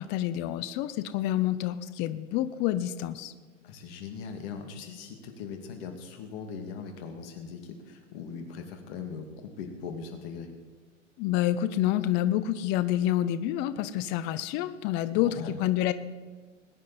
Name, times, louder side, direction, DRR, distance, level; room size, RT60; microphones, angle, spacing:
voice 1, 0.0-3.3 11.2-15.9, left 12 dB, 30° left, 13 dB, 0.6 m, -28 dB
voice 2, 3.6-10.5 15.1-15.6, left 6 dB, 50° left, 5 dB, 2.5 m, -40 dB
20.0 x 9.8 x 4.2 m, 1.4 s
hypercardioid pair, 115°, 38 cm